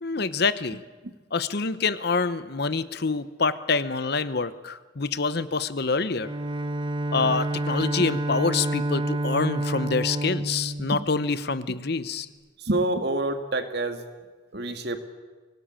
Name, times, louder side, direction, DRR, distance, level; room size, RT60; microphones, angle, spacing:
voice 1, 0.0-0.8 1.3-6.3 7.1-12.3, left 4 dB, 50° left, 14 dB, 0.9 m, -26 dB
Bowed string instrument, 6.1-11.8, right 1 dB, 25° right, 0.8 m, -29 dB
voice 2, 12.6-14.0 14.5-15.0, right 2 dB, 55° right, 7 dB, 2.1 m, -27 dB
24.5 x 19.0 x 8.9 m, 1.4 s
head